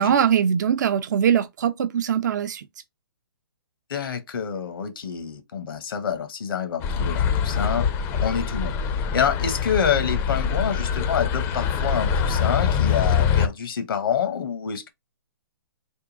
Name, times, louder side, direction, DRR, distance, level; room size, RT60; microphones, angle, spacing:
voice 1, 0.0-2.7, right 8 dB, 50° right, 0.4 m, -21 dB
voice 2, 3.9-7.9 8.2-8.7 9.1-14.9, left 7 dB, 65° left, 0.9 m, -27 dB
sound 1, 6.8-13.5, left 7 dB, 20° left, 0.5 m, -24 dB
3.6 x 2.2 x 3.8 m
hypercardioid pair, 140°, 12 cm